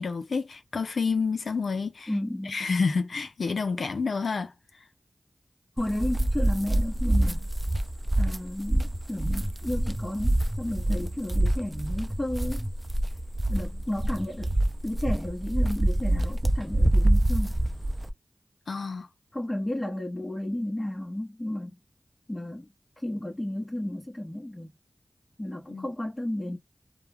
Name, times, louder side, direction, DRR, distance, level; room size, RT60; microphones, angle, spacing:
voice 1, 0.0-2.1 2.5-4.5 18.7-19.1 25.7-25.9, left 4 dB, 90° left, 0.4 m, -29 dB
voice 2, 2.1-2.6 5.8-7.5 8.2-12.7 13.5-14.5 14.8-17.6 19.3-21.8 22.3-24.7 25.4-26.6, left 1 dB, 25° left, 0.8 m, -33 dB
sound 1, 5.8-18.1, right 1 dB, 20° right, 0.5 m, -26 dB
2.2 x 2.1 x 3.2 m
cardioid pair, 45°, 0 cm